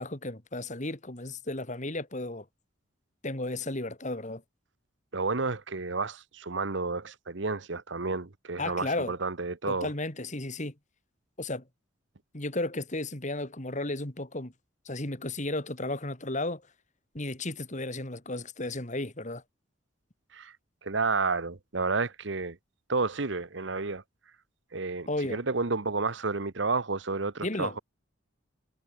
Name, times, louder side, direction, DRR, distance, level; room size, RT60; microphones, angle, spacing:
voice 1, 0.0-2.5 3.2-4.4 8.6-9.2 9.7-10.7 11.4-11.6 12.3-14.5 14.8-16.6 17.1-19.4 25.1-25.4 27.4-27.8, left 2 dB, 35° left, 2.5 m, -34 dB
voice 2, 5.1-9.9 20.3-20.5 20.8-22.6 22.9-24.0 24.7-27.8, right 3 dB, 60° right, 1.1 m, -31 dB
head